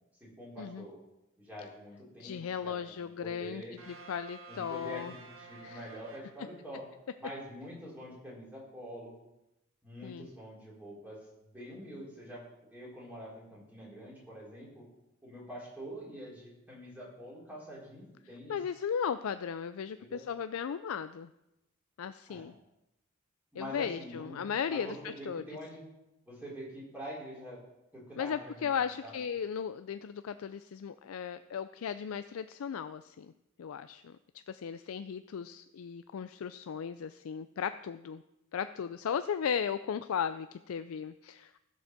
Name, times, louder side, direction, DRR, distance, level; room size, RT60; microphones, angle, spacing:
voice 1, 0.2-1.0 1.4-3.8 4.5-6.8 7.2-9.2 9.8-12.4 12.7-14.8 15.2-18.6 20.0-20.2 22.3-22.5 23.5-24.4 24.7-25.8 26.3-27.6 27.9-29.2, equal, 10° right, -6 dB, 4.2 m, -45 dB
voice 2, 2.2-5.1 5.6-5.8 10.0-10.3 18.5-21.3 22.0-22.5 23.6-25.4 28.2-33.3 33.6-34.1 34.5-38.2 38.5-41.6, left 7 dB, 80° left, 11 dB, 0.4 m, -36 dB
sound 1, 3.8-7.0, right 3 dB, 70° right, 1.6 m, -52 dB
15.0 x 5.4 x 6.6 m, 0.91 s
head